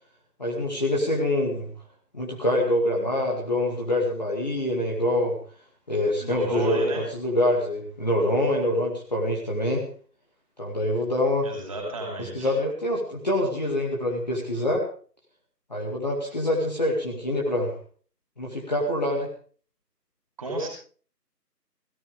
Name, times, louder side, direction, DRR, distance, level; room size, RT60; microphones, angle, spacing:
voice 1, 0.4-1.7 2.1-5.4 5.9-9.8 10.6-11.5 12.2-14.8 15.7-17.8 18.4-19.3, left 1 dB, 25° left, -2 dB, 2.3 m, -25 dB
voice 2, 6.2-7.1 11.4-12.5 20.4-20.7, right 1 dB, 20° right, 1 dB, 5.1 m, -31 dB
18.0 x 17.0 x 3.5 m, 0.43 s
figure-of-eight pair, 170°, 50 cm